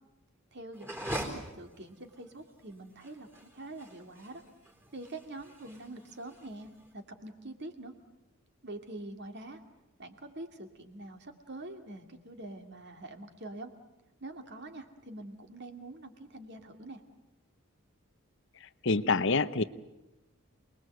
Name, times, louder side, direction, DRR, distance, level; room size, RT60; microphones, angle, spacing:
voice 1, 0.5-4.4 4.9-7.9 8.6-9.6 10.0-13.7 14.2-17.0, right 2 dB, 50° right, 6 dB, 2.5 m, -45 dB
sound 1, 0.7-6.9, right 1 dB, 10° right, 3.9 m, -43 dB
voice 2, 18.8-19.6, left 3 dB, 55° left, 13 dB, 0.9 m, -26 dB
28.0 x 20.5 x 7.9 m, 1.0 s
head